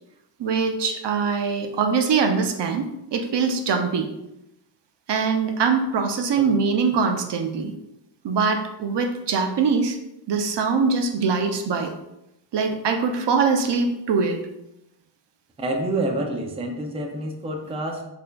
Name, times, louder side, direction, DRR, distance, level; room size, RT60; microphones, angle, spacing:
voice 1, 0.4-4.1 5.1-7.7 8.2-10.0 10.3-11.9 12.5-14.4, right 5 dB, 70° right, 5 dB, 0.5 m, -23 dB
voice 2, 15.6-18.0, right 1 dB, 15° right, 2 dB, 0.4 m, -28 dB
4.2 x 2.6 x 2.2 m, 0.87 s
wide cardioid pair, 110°, 44 cm